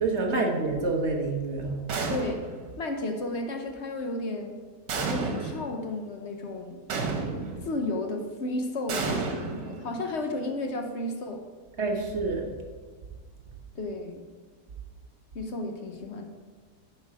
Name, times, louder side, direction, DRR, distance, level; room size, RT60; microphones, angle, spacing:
voice 1, 0.0-1.9 11.8-12.5, right 3 dB, 45° right, 2 dB, 1.1 m, -28 dB
sound 1, 1.9-2.6 4.9-5.7 6.9-7.7 8.9-10.1, right 4 dB, 85° right, 1.7 m, -31 dB
voice 2, 2.1-2.5 2.8-4.6 5.1-6.8 7.6-11.4 13.7-14.3 15.3-16.3, left 2 dB, 50° left, 4 dB, 0.9 m, -33 dB
11.0 x 4.5 x 4.8 m, 1.5 s
omnidirectional pair, 1.8 m